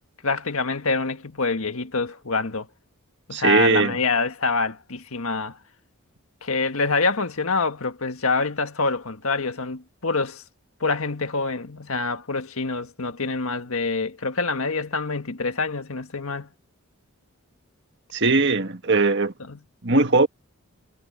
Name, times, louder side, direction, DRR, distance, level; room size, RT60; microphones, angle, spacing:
voice 1, 0.2-2.7 3.3-5.6 6.4-10.4 10.8-16.5 19.5-19.6, left 3 dB, 70° left, 1.7 m, -26 dB
voice 2, 3.3-4.0 18.1-19.3 19.8-20.3, right 3 dB, 50° right, 1.8 m, -19 dB
head